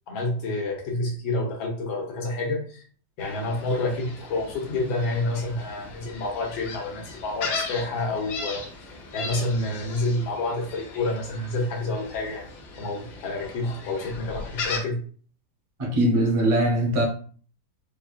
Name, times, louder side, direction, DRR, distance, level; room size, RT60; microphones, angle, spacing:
voice 1, 0.1-2.8 3.2-8.6 9.1-12.5 12.8-15.0, left 2 dB, 85° left, 1.8 m, -28 dB
Gull seagull, 3.2-14.8, left 4 dB, 65° left, 1.3 m, -37 dB
voice 2, 15.8-17.0, right 1 dB, 35° right, 0.5 m, -21 dB
4.7 x 2.5 x 2.3 m
omnidirectional pair, 2.1 m